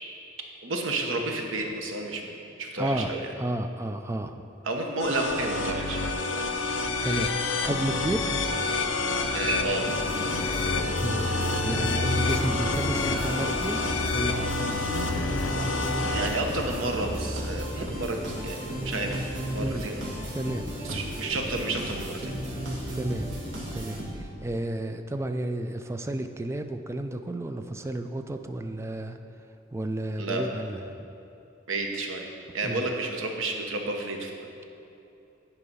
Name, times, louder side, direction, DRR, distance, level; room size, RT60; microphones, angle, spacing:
voice 1, 0.6-3.2 4.6-6.5 9.3-9.9 16.1-20.0 20.8-22.3 30.2-30.4 31.7-32.3 32.5-34.5, right 2 dB, 80° right, 2 dB, 1.0 m, -31 dB
voice 2, 2.8-4.4 7.0-8.4 11.0-13.8 14.1-14.8 17.7-17.8 19.6-19.9 20.3-21.1 23.0-29.2 29.7-31.1 32.6-32.9, right 1 dB, 15° right, 7 dB, 0.3 m, -32 dB
sound 1, 5.0-16.4, left 3 dB, 70° left, 0.7 m, -29 dB
Fixed-wing aircraft airplane, 7.7-21.2, left 1 dB, 20° left, 0.6 m, -35 dB
sound 2, 9.9-24.4, equal, 65° right, 1.9 m, -35 dB
9.9 x 4.7 x 5.4 m, 2.8 s
head